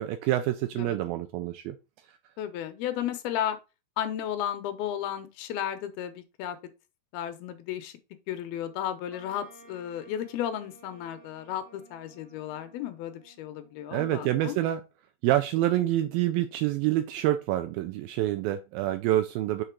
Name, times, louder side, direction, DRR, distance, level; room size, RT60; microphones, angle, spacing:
voice 1, 0.0-1.8 13.9-14.8 15.2-19.6, right 14 dB, 80° right, 2.1 m, -27 dB
voice 2, 2.4-3.6 4.0-6.6 7.1-7.9 8.3-14.6, left 10 dB, 80° left, 2.5 m, -34 dB
Wind instrument woodwind instrument, 9.1-14.1, right 2 dB, 45° right, 0.7 m, -55 dB
6.7 x 3.6 x 4.5 m
omnidirectional pair, 4.6 m